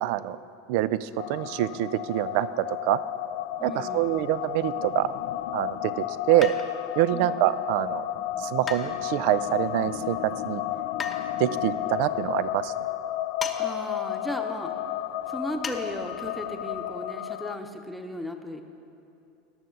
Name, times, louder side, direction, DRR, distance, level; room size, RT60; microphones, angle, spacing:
voice 1, 0.0-0.4 0.7-3.0 3.6-5.1 5.5-6.5 7.0-8.0 8.4-10.6 11.4-12.7, right 14 dB, 60° right, 16 dB, 0.3 m, -25 dB
sound 1, 1.2-17.6, left 12 dB, 65° left, 0.3 m, -32 dB
voice 2, 3.6-4.3 7.1-7.4 13.6-14.7 15.3-18.6, equal, ahead, 4 dB, 0.9 m, -36 dB
sound 2, 6.4-7.0 8.7-9.4 11.0-11.2 13.4-13.6 13.9-14.0 15.6-15.8 16.2-16.3, left 5 dB, 25° left, 0.7 m, -35 dB
18.0 x 6.4 x 3.9 m, 2.7 s
hypercardioid pair, 85°, 0 cm